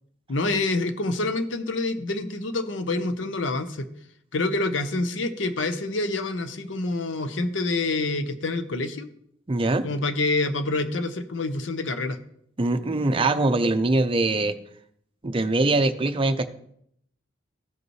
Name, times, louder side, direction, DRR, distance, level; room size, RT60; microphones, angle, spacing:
voice 1, 0.3-3.9 4.3-9.1 9.8-12.2, left 2 dB, 75° left, 9 dB, 0.8 m, -27 dB
voice 2, 9.5-9.9 12.6-14.5 15.2-16.5, right 2 dB, 30° right, 9 dB, 0.5 m, -22 dB
15.0 x 5.1 x 3.2 m, 0.70 s
head